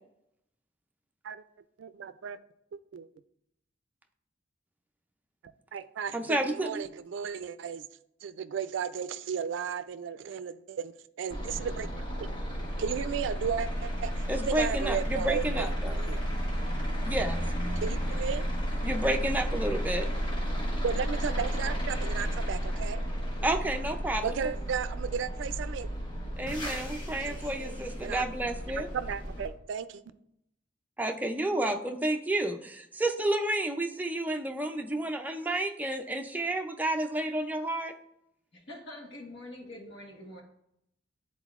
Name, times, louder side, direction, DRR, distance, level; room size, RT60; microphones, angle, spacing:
voice 1, 1.8-2.4 2.7-3.1 5.7-7.8 8.2-10.9 11.2-11.9 12.8-16.3 17.8-18.5 20.8-23.0 24.2-25.9 27.2-27.7 28.0-28.3 28.9-30.0, right 7 dB, 80° right, 13 dB, 0.3 m, -34 dB
voice 2, 6.1-6.8 14.3-16.0 17.0-17.4 18.8-20.1 23.4-24.4 26.4-28.9 31.0-37.9, right 1 dB, 10° right, 3 dB, 0.4 m, -30 dB
sound 1, 11.3-29.5, equal, 25° left, 1.0 m, -33 dB
voice 3, 38.5-40.4, left 1 dB, 70° left, 0 dB, 1.3 m, -45 dB
10.0 x 4.1 x 2.4 m, 0.77 s
head